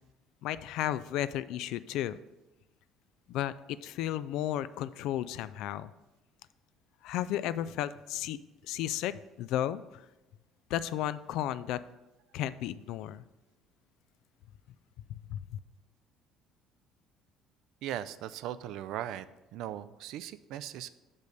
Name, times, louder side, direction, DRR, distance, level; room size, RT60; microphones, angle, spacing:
voice 1, 0.4-2.2 3.3-5.9 7.0-8.4 8.6-10.0 10.7-11.8 12.3-13.2 15.1-15.6, left 12 dB, 70° left, 15 dB, 0.3 m, -34 dB
voice 2, 17.8-19.3 19.5-20.9, right 11 dB, 70° right, 14 dB, 0.4 m, -38 dB
6.4 x 5.4 x 5.2 m, 1.0 s
cardioid pair, 155°, 0 cm